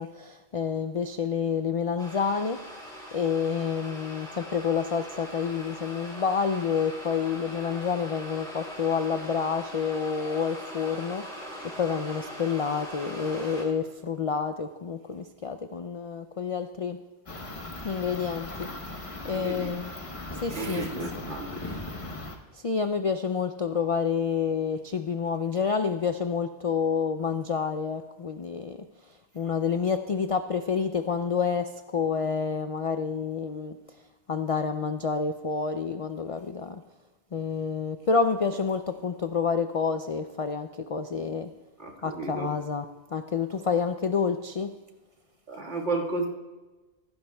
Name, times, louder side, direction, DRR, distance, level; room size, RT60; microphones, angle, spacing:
voice 1, 0.0-2.6 3.1-11.2 11.8-17.0 17.8-18.7 19.2-19.9 20.4-20.9 22.5-28.8 29.3-33.8 34.3-36.8 37.3-41.5 42.0-42.8 43.1-44.7, left 6 dB, 60° left, 8 dB, 0.3 m, -28 dB
sound 1, 2.0-13.6, equal, 5° left, 2.9 m, -41 dB
sound 2, 17.3-22.4, left 2 dB, 30° left, 1.0 m, -38 dB
voice 2, 19.2-19.7 20.5-21.8 41.8-42.5 45.5-46.3, right 3 dB, 75° right, -3 dB, 2.1 m, -33 dB
15.5 x 15.0 x 2.3 m, 1.2 s
omnidirectional pair, 1.2 m